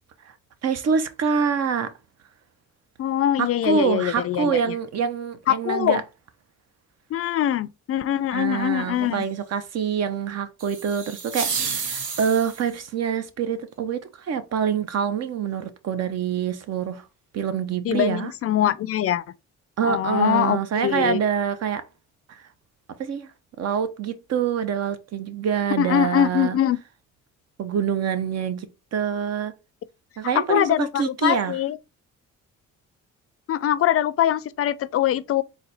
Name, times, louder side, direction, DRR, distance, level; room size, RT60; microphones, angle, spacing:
voice 1, 0.6-1.9 3.4-6.0 8.3-17.0 17.3-18.3 19.8-21.8 22.3-22.5 23.0-23.3 23.6-26.6 27.6-29.5 30.2-31.6, right 7 dB, 55° right, 0.7 m, -26 dB
voice 2, 3.0-4.7 5.5-6.0 7.1-9.2 17.8-19.2 19.8-21.2 25.8-26.8 30.3-31.8 33.5-35.4, left 11 dB, 50° left, 0.4 m, -23 dB
sound 1, 10.6-12.8, right 5 dB, 90° right, 1.0 m, -30 dB
4.0 x 2.3 x 4.0 m
cardioid pair, 90°, 30 cm